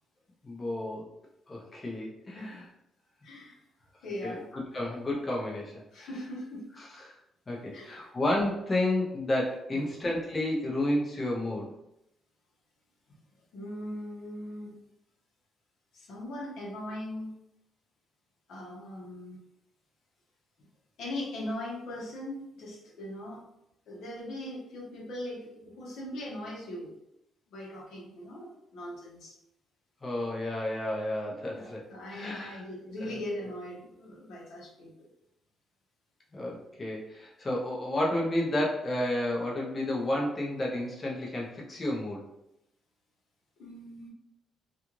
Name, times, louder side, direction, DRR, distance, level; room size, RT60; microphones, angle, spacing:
voice 1, 0.4-1.1 1.5-2.6 4.2-4.4 4.7-6.1 7.0-7.2 7.5-11.7 30.0-31.8 32.1-32.6 33.0-33.2 36.3-42.2, left 1 dB, 30° left, -3 dB, 0.7 m, -31 dB
voice 2, 3.2-3.6 4.0-4.5 5.9-6.6 7.7-8.1 9.7-10.0 13.5-14.8 15.9-17.3 18.5-19.4 21.0-23.4 23.9-27.0 27.5-29.4 31.5-35.1 43.6-44.1, left 1 dB, 75° left, -3 dB, 0.9 m, -40 dB
2.4 x 2.4 x 3.0 m, 0.82 s
cardioid pair, 90°, 0 cm